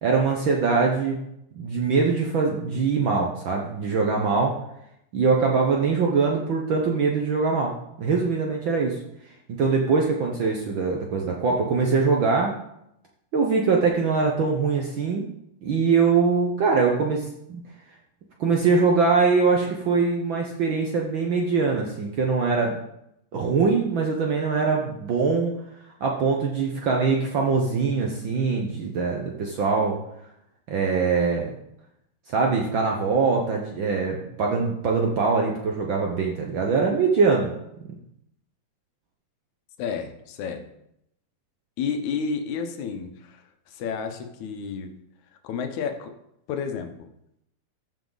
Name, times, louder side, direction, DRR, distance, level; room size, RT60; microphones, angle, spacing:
voice 1, 0.0-1.2 1.6-4.6 5.1-9.0 9.6-12.5 13.3-15.3 15.6-17.6 18.4-22.8 23.3-25.5 26.0-30.0 30.7-31.6 32.3-37.5 37.8-38.0, right 4 dB, 70° right, 0 dB, 1.2 m, -23 dB
voice 2, 39.8-40.6 41.8-44.9 45.4-46.1 46.5-47.1, left 6 dB, 75° left, 6 dB, 2.3 m, -31 dB
14.0 x 6.0 x 3.9 m, 0.79 s
omnidirectional pair, 3.4 m